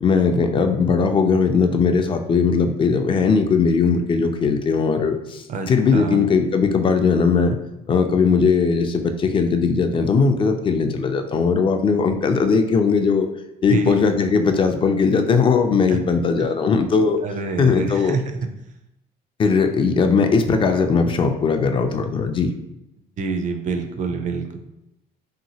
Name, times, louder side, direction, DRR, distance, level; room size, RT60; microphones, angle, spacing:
voice 1, 0.0-7.6 7.9-13.3 13.6-17.2 17.6-18.2 19.4-22.5, left 5 dB, 30° left, 6 dB, 0.3 m, -19 dB
voice 2, 5.5-6.3 13.7-14.0 15.9-16.0 16.4-16.5 17.2-18.3 23.2-24.6, right 5 dB, 45° right, 6 dB, 0.4 m, -26 dB
2.9 x 2.6 x 2.8 m, 0.87 s
cardioid pair, 110°, 17 cm